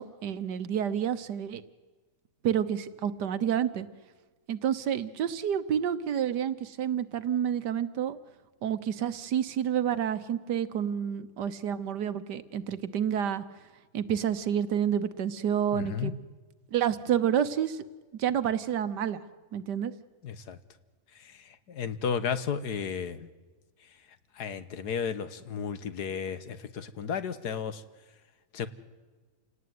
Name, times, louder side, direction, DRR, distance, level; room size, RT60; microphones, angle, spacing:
voice 1, 0.0-1.6 2.4-3.9 4.5-8.2 8.6-13.4 13.9-16.1 16.7-17.8 18.1-19.2 19.5-19.9, right 9 dB, 85° right, 13 dB, 1.7 m, -29 dB
voice 2, 15.7-16.1 20.2-20.6 21.2-23.3 24.4-27.8 28.5-28.7, left 7 dB, 75° left, 13 dB, 1.8 m, -33 dB
28.5 x 18.0 x 9.5 m, 1.3 s
omnidirectional pair, 1.7 m